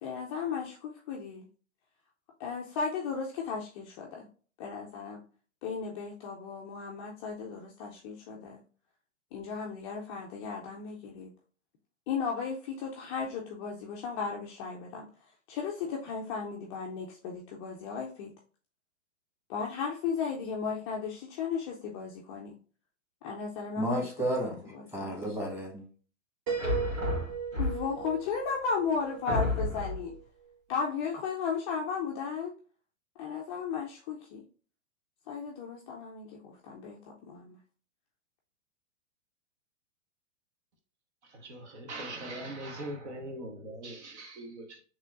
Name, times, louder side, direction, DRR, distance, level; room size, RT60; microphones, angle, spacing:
voice 1, 0.0-1.5 2.4-4.3 4.6-5.2 5.6-8.6 9.3-11.3 12.1-15.1 15.5-18.3 19.5-22.6 23.2-24.1 24.7-25.4 27.6-30.2 30.7-32.5 33.2-34.4 35.3-37.6, left 6 dB, 20° left, 0.4 m, -35 dB
voice 2, 23.8-25.9, equal, 5° right, 1.4 m, -32 dB
Piano, 26.5-30.2, right 6 dB, 35° right, 1.5 m, -38 dB
Door Opening And Closing, 26.6-28.1 28.7-28.8 29.3-30.1, left 2 dB, 75° right, 2.2 m, -31 dB
voice 3, 41.3-44.8, right 1 dB, 60° right, 1.2 m, -41 dB
7.2 x 3.0 x 2.4 m
figure-of-eight pair, 110°, 39 cm